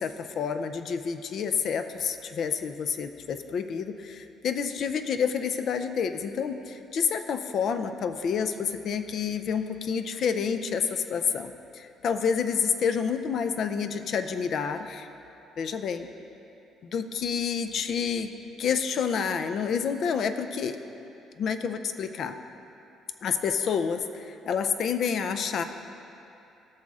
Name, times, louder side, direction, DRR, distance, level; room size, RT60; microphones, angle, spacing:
voice 1, 0.0-15.1 15.6-16.1 16.8-18.3 18.6-20.8 21.4-22.4 23.2-25.6, left 6 dB, 45° left, 9 dB, 0.5 m, -29 dB
17.0 x 6.4 x 3.6 m, 2.8 s
cardioid pair, 175°, 0 cm